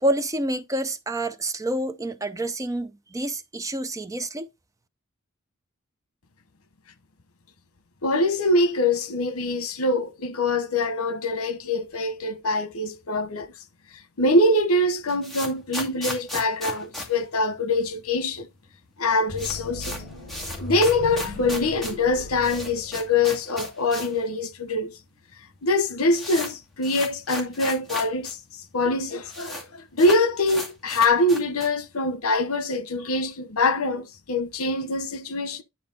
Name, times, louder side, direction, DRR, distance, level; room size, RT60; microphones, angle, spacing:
voice 1, 0.0-4.5, right 1 dB, 15° right, 0.5 m, -28 dB
voice 2, 8.0-13.5 14.2-18.5 19.0-20.0 20.6-25.0 25.6-28.4 28.7-35.6, left 2 dB, 80° left, 1.0 m, -24 dB
Brushing snow or rain off a nylon down coat or jacket, 14.8-18.1 18.3-18.4 18.7-18.8 19.1-24.2 24.5-24.6 25.3-25.4 25.7-28.3 28.6-28.7 28.9-29.6 30.0-31.8, left 1 dB, ahead, 2.3 m, -35 dB
sound 1, 19.3-23.6, left 2 dB, 35° left, 5.7 m, -37 dB
10.5 x 4.3 x 3.9 m
head